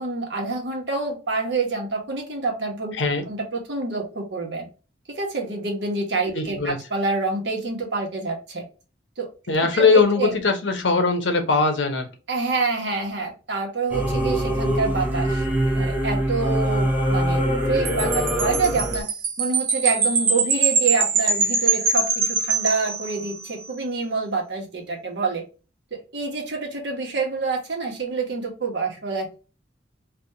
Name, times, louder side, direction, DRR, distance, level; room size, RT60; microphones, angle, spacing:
voice 1, 0.0-2.9 3.3-4.7 5.1-8.6 9.2-9.3 9.7-10.4 12.3-15.4 15.8-19.1 19.4-25.4 26.1-29.3, right 3 dB, 65° right, 1 dB, 1.3 m, -27 dB
voice 2, 6.3-6.8 9.5-12.1, left 4 dB, 75° left, 6 dB, 0.9 m, -20 dB
Singing / Musical instrument, 13.9-19.0, right 1 dB, 10° right, 0.7 m, -23 dB
Wind chime, 17.8-23.5, right 4 dB, 50° right, 1.0 m, -23 dB
3.4 x 2.7 x 2.7 m, 0.33 s
head